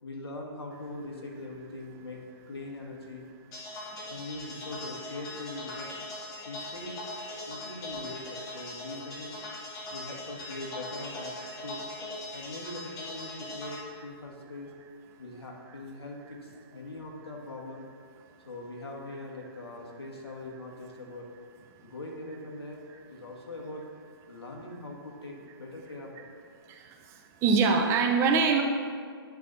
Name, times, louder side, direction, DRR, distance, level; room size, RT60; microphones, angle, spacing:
voice 1, 0.0-3.2 4.1-5.9 6.4-7.0 7.5-9.4 9.9-11.3 11.6-11.9 12.3-14.7 15.2-17.9 18.5-21.3 21.8-23.8 24.3-26.3, left 2 dB, 75° left, 0 dB, 1.7 m, -41 dB
sound 1, 3.5-13.8, left 1 dB, 25° left, 1.5 m, -40 dB
voice 2, 26.7-28.6, right 5 dB, 20° right, 2 dB, 0.6 m, -25 dB
10.0 x 4.1 x 4.1 m, 2.1 s
hypercardioid pair, 135°, 13 cm